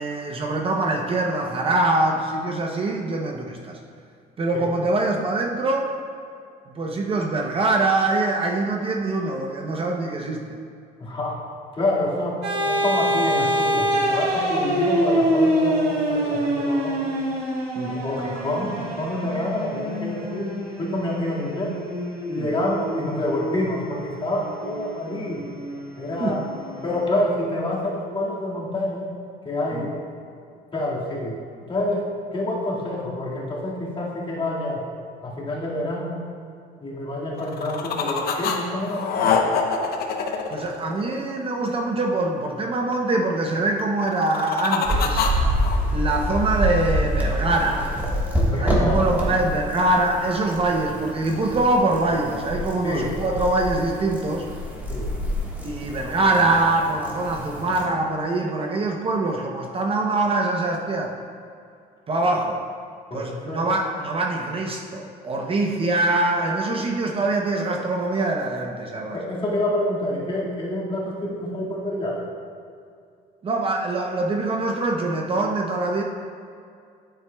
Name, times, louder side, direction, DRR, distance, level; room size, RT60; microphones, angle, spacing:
voice 1, 0.0-3.8 4.4-5.9 6.7-10.6 17.8-17.9 22.4-22.5 26.2-26.4 29.7-29.9 40.5-45.2 45.9-47.9 48.6-54.5 55.6-61.2 62.1-62.6 63.1-69.2 73.4-76.0, right 2 dB, 35° right, 1 dB, 0.7 m, -24 dB
voice 2, 11.0-11.4 11.8-17.2 17.8-21.8 22.3-25.4 26.0-26.5 26.8-29.1 29.4-30.0 30.7-31.4 31.7-34.9 35.2-36.2 36.8-39.5 48.5-49.3 52.8-53.1 54.9-55.2 63.1-63.7 69.1-72.3, left 1 dB, 30° left, -5 dB, 1.9 m, -27 dB
sound 1, 12.4-27.0, equal, 85° right, 1.7 m, -26 dB
sound 2, 37.4-38.6 38.8-41.3 44.0-45.8, left 6 dB, 65° left, 0.8 m, -25 dB
sound 3, 44.8-57.9, equal, 10° right, 1.4 m, -27 dB
9.3 x 8.1 x 2.2 m, 2.3 s
cardioid pair, 110°, 17 cm